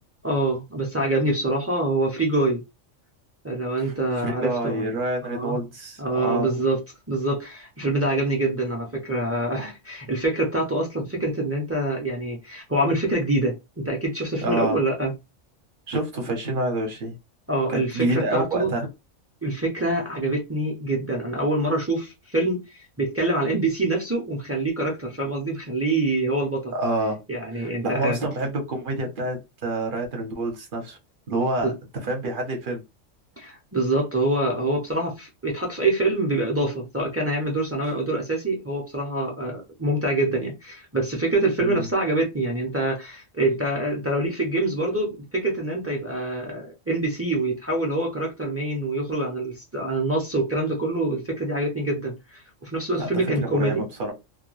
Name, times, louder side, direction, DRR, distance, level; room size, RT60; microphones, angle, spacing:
voice 1, 0.2-2.6 3.4-4.8 5.2-5.6 6.0-6.8 7.1-15.1 17.5-18.7 19.4-22.6 23.0-26.7 27.3-28.2 31.6-31.7 33.4-53.8, right 2 dB, 20° right, 0.4 m, -25 dB
voice 2, 3.8-6.6 14.4-14.8 15.9-17.2 17.7-18.9 26.7-27.2 27.5-31.0 31.3-31.7 32.0-32.8 41.6-41.9 53.0-54.1, right 2 dB, 50° right, 0.8 m, -28 dB
2.3 x 2.2 x 3.0 m
omnidirectional pair, 1.3 m